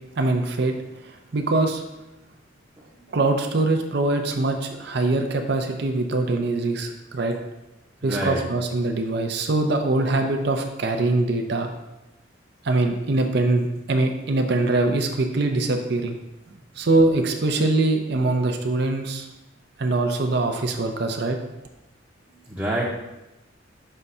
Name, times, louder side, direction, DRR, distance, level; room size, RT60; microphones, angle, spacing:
voice 1, 0.2-0.7 1.0-1.8 3.1-7.4 8.0-11.7 12.6-16.2 16.8-19.3 19.8-21.4, right 2 dB, 55° right, 4 dB, 0.6 m, -23 dB
voice 2, 8.0-8.4 22.5-22.8, right 1 dB, 15° right, -6 dB, 0.7 m, -26 dB
5.6 x 3.5 x 5.4 m, 0.97 s
head